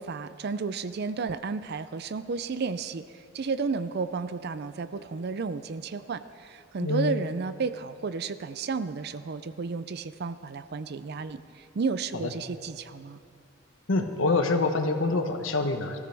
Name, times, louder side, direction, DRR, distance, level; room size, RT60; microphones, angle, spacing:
voice 1, 0.0-13.2, right 4 dB, 55° right, 13 dB, 0.4 m, -32 dB
voice 2, 6.8-7.1 12.2-12.3 13.9-16.0, left 3 dB, 75° left, 6 dB, 1.1 m, -26 dB
19.0 x 14.5 x 3.4 m, 2.5 s
head